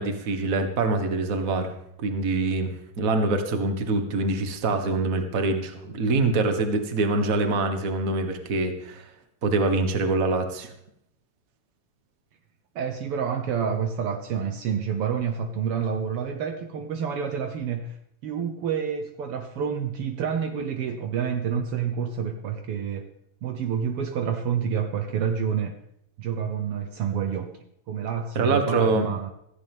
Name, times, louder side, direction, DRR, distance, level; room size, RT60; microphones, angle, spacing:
voice 1, 0.0-1.7 2.0-9.1 9.4-10.7 28.3-29.1, right 3 dB, 40° right, 6 dB, 1.2 m, -25 dB
voice 2, 12.7-18.0 18.2-23.0 23.4-25.7 26.2-27.5 27.9-29.3, right 7 dB, 80° right, 6 dB, 1.2 m, -28 dB
17.0 x 14.5 x 3.6 m, 0.77 s
omnidirectional pair, 3.9 m